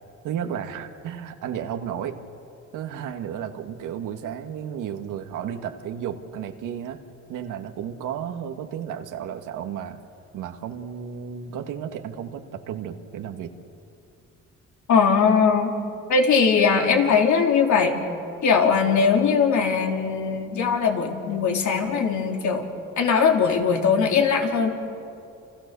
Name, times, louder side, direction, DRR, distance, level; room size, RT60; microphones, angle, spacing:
voice 1, 0.2-2.2 2.7-7.0 7.3-10.0 10.3-13.5, right 8 dB, 90° right, 5 dB, 2.0 m, -33 dB
voice 2, 14.9-15.7 16.1-17.9 18.4-22.6 23.0-24.7, left 5 dB, 70° left, 2 dB, 4.1 m, -20 dB
29.5 x 28.5 x 7.0 m, 2.5 s
cardioid pair, 90°, 30 cm